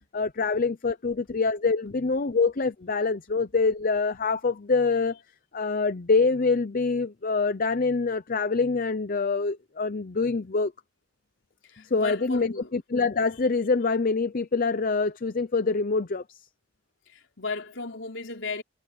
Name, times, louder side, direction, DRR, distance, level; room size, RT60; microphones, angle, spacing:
voice 1, 0.1-5.2 5.5-10.7 11.9-16.2, left 4 dB, 45° left, 0.7 m, -25 dB
voice 2, 11.6-12.7 17.1-18.6, left 3 dB, 70° left, 4.0 m, -35 dB
head